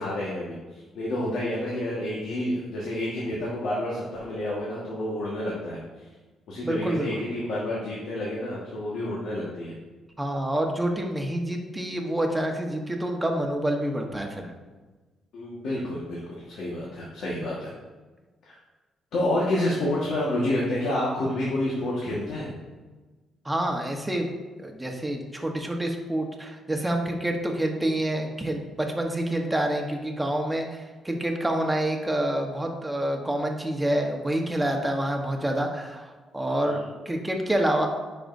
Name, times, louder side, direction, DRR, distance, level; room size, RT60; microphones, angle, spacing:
voice 1, 0.0-6.1 6.5-9.8 15.3-17.7 18.4-18.6 19.1-22.5 36.6-36.8, left 1 dB, 75° left, -5 dB, 1.5 m, -29 dB
voice 2, 6.6-7.3 10.2-14.5 23.4-24.3 24.6-37.9, right 1 dB, 10° right, 2 dB, 1.1 m, -27 dB
9.9 x 5.2 x 2.6 m, 1.3 s
cardioid pair, 90°, 0 cm